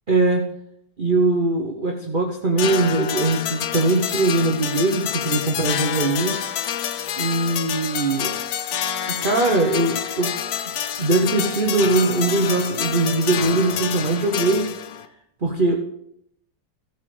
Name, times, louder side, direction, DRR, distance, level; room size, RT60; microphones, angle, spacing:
voice 1, 0.1-0.5 1.0-6.4 7.2-8.3 9.1-10.3 11.0-14.7 15.4-15.8, right 2 dB, 35° right, 1 dB, 0.9 m, -21 dB
sound 1, 2.6-15.1, left 9 dB, 65° left, 1.1 m, -28 dB
16.5 x 7.3 x 3.3 m, 0.75 s
omnidirectional pair, 1.9 m